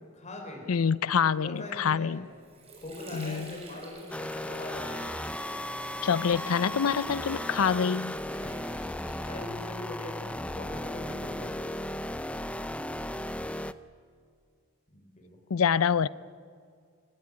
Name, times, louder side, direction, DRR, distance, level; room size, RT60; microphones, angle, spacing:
voice 1, 0.1-0.7 1.2-2.2 2.8-5.1 8.3-8.6 9.3-11.8 14.9-15.6, left 2 dB, 35° left, 1 dB, 4.6 m, -42 dB
voice 2, 0.7-2.2 3.1-3.5 6.0-8.2 15.5-16.1, left 7 dB, 85° left, 19 dB, 0.5 m, -26 dB
Water / Sink (filling or washing), 2.1-9.8, right 2 dB, 30° right, 6.0 m, -48 dB
sound 1, 4.1-13.7, left 1 dB, 5° left, 0.6 m, -36 dB
25.0 x 18.0 x 9.8 m, 2.2 s
head